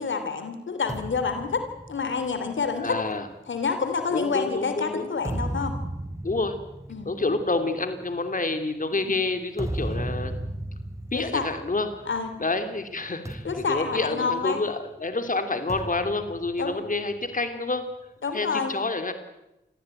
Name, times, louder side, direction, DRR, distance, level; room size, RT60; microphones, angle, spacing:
voice 1, 0.0-3.0 3.5-5.8 6.9-7.1 8.9-9.1 11.1-11.5 12.1-12.3 13.4-14.6 16.6-16.8 18.2-18.7, left 5 dB, 75° left, 8 dB, 3.0 m, -28 dB
sound 1, 0.9-4.5 5.0-12.4 12.7-12.9 13.3-14.9 15.7-17.4, right 1 dB, 15° right, 3.8 m, -36 dB
voice 2, 2.8-3.3 4.1-5.1 6.2-6.6 7.0-10.3 11.1-12.1 12.4-17.9 18.3-19.1, left 3 dB, 45° left, 8 dB, 3.0 m, -28 dB
25.5 x 15.0 x 9.1 m, 0.90 s
cardioid pair, 40°, 20 cm